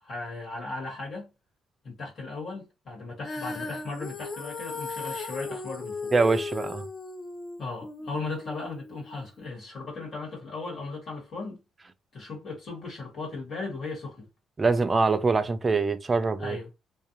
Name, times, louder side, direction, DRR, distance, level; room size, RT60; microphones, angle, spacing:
voice 1, 0.0-1.3 1.8-6.1 7.6-11.6 12.1-14.3 16.4-16.7, left 3 dB, 60° left, 1.3 m, -37 dB
Female singing, 3.2-9.5, left 4 dB, 40° left, 0.7 m, -37 dB
voice 2, 6.1-6.9 14.6-16.6, right 4 dB, 30° right, 0.4 m, -24 dB
2.4 x 2.1 x 2.8 m
supercardioid pair, 75°, 0 cm